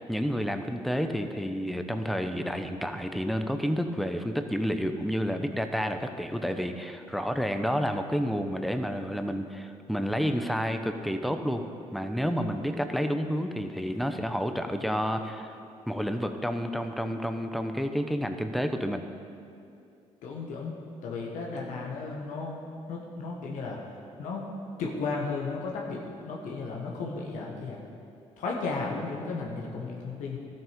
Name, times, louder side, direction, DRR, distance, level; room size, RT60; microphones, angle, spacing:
voice 1, 0.0-11.6 11.9-15.6 15.9-19.1, equal, ahead, 7 dB, 0.9 m, -30 dB
voice 2, 20.2-20.8 21.0-22.6 22.9-23.8 24.2-24.5 24.8-27.8 28.4-30.4, left 4 dB, 75° left, -2 dB, 1.5 m, -34 dB
13.0 x 7.6 x 5.2 m, 2.5 s
supercardioid pair, 60°, 13 cm